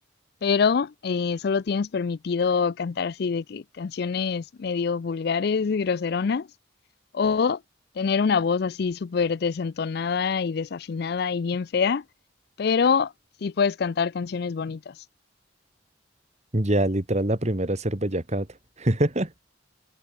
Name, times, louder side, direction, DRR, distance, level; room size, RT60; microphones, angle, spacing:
voice 1, 0.4-6.5 7.1-7.6 8.0-12.0 12.6-13.1 13.4-14.9, left 5 dB, 60° left, 0.4 m, -25 dB
voice 2, 16.5-18.5 18.8-19.4, right 1 dB, 40° right, 2.3 m, -24 dB
head